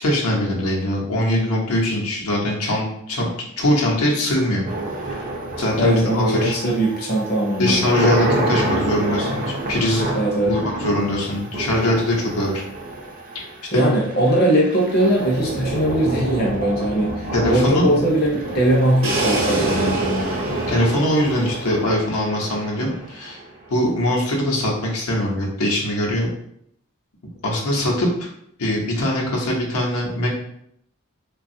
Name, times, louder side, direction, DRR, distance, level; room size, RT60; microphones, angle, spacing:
voice 1, 0.0-3.3 3.6-4.7 5.1-5.2 5.6-6.5 7.6-10.1 10.4-12.6 13.3-13.4 13.7-13.9 17.3-17.9 20.7-23.4 23.7-26.3 27.4-28.1 28.6-30.3, left 1 dB, 85° left, -2 dB, 0.7 m, -22 dB
sound 1, 4.7-23.7, right 1 dB, 40° right, 0.5 m, -28 dB
voice 2, 5.8-7.8 10.1-10.5 13.7-20.3, right 1 dB, 45° left, -3 dB, 0.6 m, -20 dB
Crash cymbal, 19.0-22.8, right 2 dB, 70° right, 0.8 m, -31 dB
3.2 x 2.3 x 2.6 m, 0.70 s
head